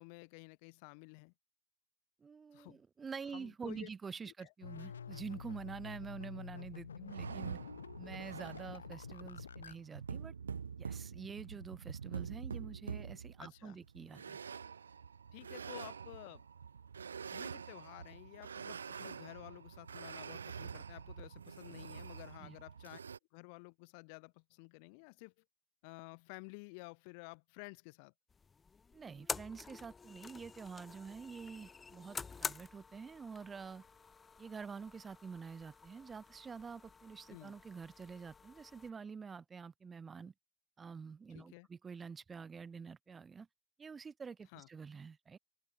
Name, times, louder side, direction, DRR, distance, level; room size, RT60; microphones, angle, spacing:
voice 1, 0.0-1.3 2.5-2.8 3.3-3.9 4.3-4.5 13.4-13.8 15.3-16.4 17.3-23.0 23.3-25.3 25.8-28.1 37.3-37.6 41.3-41.7 44.5-44.7, left 35 dB, 55° left, 2.3 m, -52 dB
voice 2, 2.2-7.6 8.0-10.3 10.8-14.4 22.4-22.6 28.9-33.8 34.4-40.3 40.8-43.5 43.8-45.4, right 5 dB, 20° right, 2.2 m, -47 dB
sound 1, 4.6-9.8, left 7 dB, 75° left, 3.0 m, -48 dB
sound 2, 7.1-23.2, right 6 dB, 75° right, 1.1 m, -46 dB
sound 3, 28.3-38.9, left 5 dB, 20° left, 0.6 m, -48 dB
open air
figure-of-eight pair, 75°, 0 cm